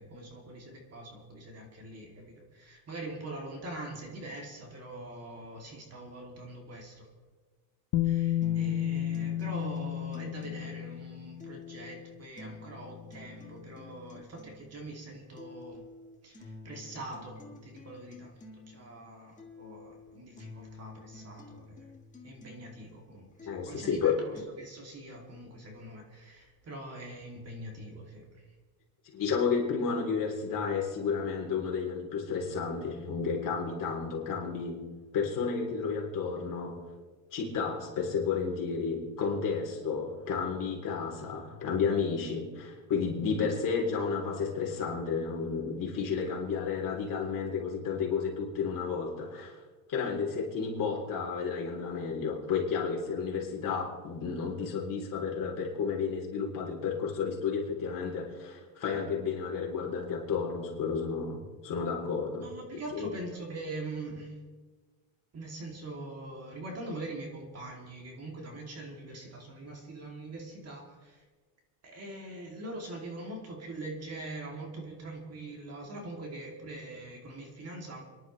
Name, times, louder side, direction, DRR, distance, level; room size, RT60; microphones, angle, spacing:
voice 1, 0.0-7.1 8.0-15.8 16.2-21.9 22.2-28.4 62.4-64.4 65.3-71.2 71.8-78.0, right 2 dB, 30° right, 1 dB, 2.8 m, -43 dB
Bass guitar, 7.9-11.9 13.0-13.1, left 12 dB, 70° left, 1.1 m, -31 dB
sound 1, 8.4-24.4, left 3 dB, 15° left, 1.6 m, -50 dB
voice 2, 23.4-24.2 29.1-34.9 35.1-36.8 37.3-49.6 49.9-62.5 62.9-63.1, left 5 dB, 40° left, -1 dB, 3.6 m, -32 dB
28.5 x 11.0 x 3.3 m, 1.4 s
cardioid pair, 135°, 47 cm